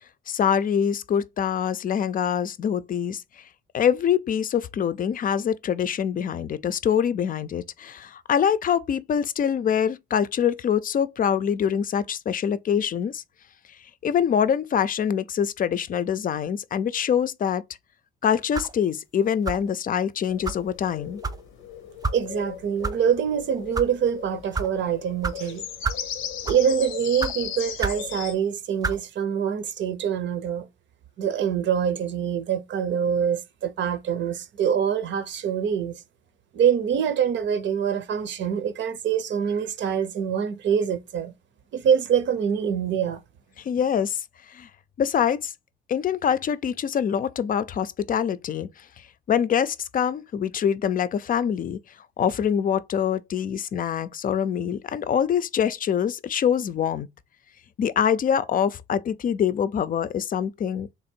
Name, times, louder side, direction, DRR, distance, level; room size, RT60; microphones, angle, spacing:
voice 1, 0.3-3.4 3.7-13.2 14.0-17.6 18.2-21.2 43.6-44.7 45.0-45.5 45.9-51.8 52.2-57.1 57.8-60.9, left 8 dB, 45° left, 0.4 m, -25 dB
sound 1, 18.5-18.8 19.4-19.7 20.4-20.6 21.2-21.4 22.0-22.2 22.8-23.0 23.6-23.9 24.5-24.7 25.2-25.4 25.8-26.1 26.4-26.7 27.2-27.3 27.8-28.0 28.8-29.0, right 4 dB, 20° right, 0.4 m, -28 dB
sound 2, 20.3-28.3, left 9 dB, 90° left, 0.7 m, -37 dB
voice 2, 22.1-25.6 26.4-30.7 31.2-36.0 36.5-41.3 41.7-43.2, right 8 dB, 70° right, 0.7 m, -25 dB
3.5 x 2.5 x 4.4 m
cardioid pair, 90°, 20 cm